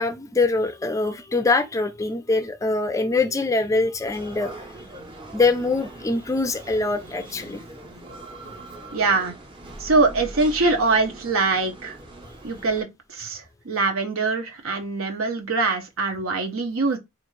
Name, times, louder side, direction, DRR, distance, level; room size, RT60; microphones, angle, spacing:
voice 1, 0.0-4.5 5.3-7.6, left 3 dB, 15° left, 0.3 m, -23 dB
sound 1, 4.0-12.8, right 2 dB, 25° right, 0.7 m, -41 dB
voice 2, 8.9-9.3 9.8-12.0 12.4-17.0, right 3 dB, 75° right, 0.7 m, -23 dB
4.4 x 2.5 x 3.1 m
head